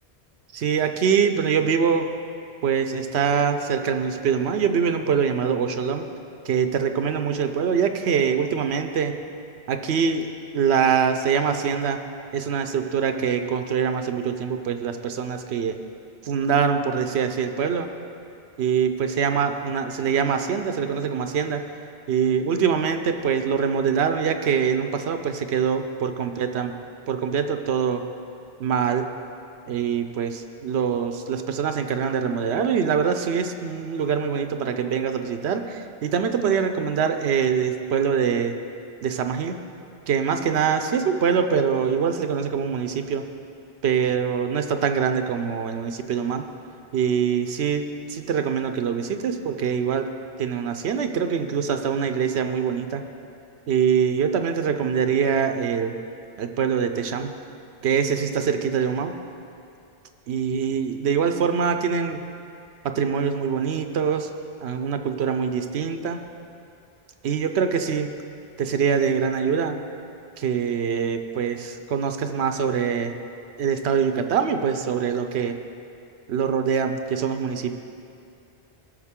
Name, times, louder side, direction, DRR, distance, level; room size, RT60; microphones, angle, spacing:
voice 1, 0.5-2.1 2.6-6.0 6.5-9.1 9.7-10.3 10.5-12.0 12.3-15.7 16.2-17.9 18.6-21.6 22.1-26.7 27.1-28.0 28.6-29.1 29.7-38.6 39.0-39.6 40.1-43.2 43.8-46.4 46.9-47.8 48.1-50.1 50.4-53.0 53.7-56.0 56.4-57.3 57.8-59.1 60.3-62.2 62.8-64.3 64.6-66.2 67.2-68.1 68.6-69.8 70.4-73.1 73.6-75.5 76.3-77.7, right 7 dB, 75° right, 7 dB, 0.9 m, -24 dB
17.0 x 6.4 x 3.7 m, 2.6 s
omnidirectional pair, 1.1 m